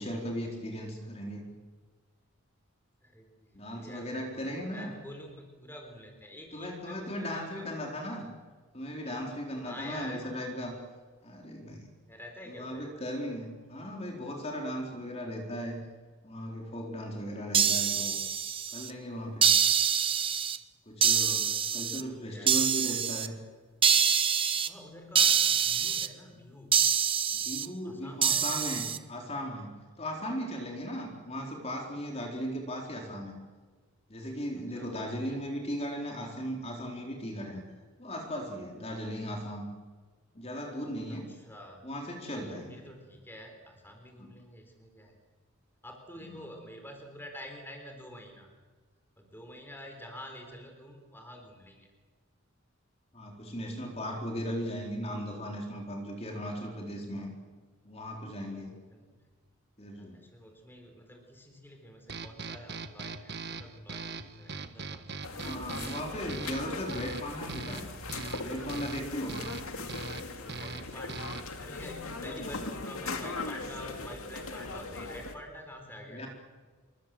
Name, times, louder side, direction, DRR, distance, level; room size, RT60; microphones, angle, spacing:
voice 1, 0.0-1.5 3.5-4.9 6.5-8.3 8.7-10.8 11.2-11.9 12.5-15.9 16.2-18.2 18.7-19.5 20.9-23.3 27.3-33.4 34.1-37.6 38.0-39.6 40.3-41.3 41.8-42.8 44.2-44.3 53.1-57.3 57.8-58.7 59.8-60.2 65.4-67.9 68.4-69.6 72.2-72.4 76.1-76.3, equal, 30° left, 1 dB, 4.0 m, -37 dB
voice 2, 3.0-7.7 9.6-10.3 12.1-12.8 22.3-22.5 24.6-26.7 27.8-28.6 34.7-34.9 35.1-35.4 41.1-41.8 42.7-45.2 45.8-48.5 49.2-51.9 58.9-59.1 60.0-65.3 69.4-69.6 70.5-76.2, left 1 dB, 10° left, 3 dB, 4.0 m, -47 dB
sound 1, 17.5-18.9 19.4-20.6 21.0-22.0 22.5-23.3 23.8-24.7 25.1-26.1 26.7-27.7 28.2-29.0, right 8 dB, 25° right, 0.9 m, -25 dB
sound 2, 62.1-71.6, right 4 dB, 50° right, 1.4 m, -41 dB
sound 3, 65.2-75.4, left 3 dB, 80° left, 2.5 m, -39 dB
27.5 x 23.0 x 7.7 m, 1.4 s
head